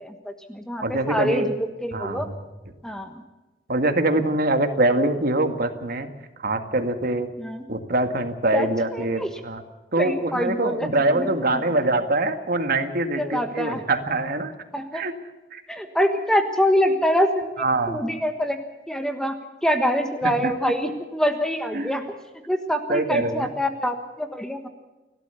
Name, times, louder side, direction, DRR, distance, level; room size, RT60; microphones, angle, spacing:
voice 1, 0.0-2.3 2.8-3.2 3.8-3.9 7.4-7.6 8.5-9.3 10.0-11.3 11.5-11.7 13.2-13.8 14.7-15.0 15.7-18.6 18.9-22.0 22.5-24.7, equal, 5° left, 6 dB, 1.4 m, -25 dB
voice 2, 0.8-1.5 1.9-2.4 3.7-6.1 6.4-7.3 7.7-9.6 9.9-14.5 14.9-15.1 15.5-15.6 17.6-18.1 20.2-20.5 21.7-22.0 22.9-23.5, right 2 dB, 55° right, 7 dB, 2.0 m, -24 dB
30.0 x 12.5 x 7.0 m, 1.1 s
head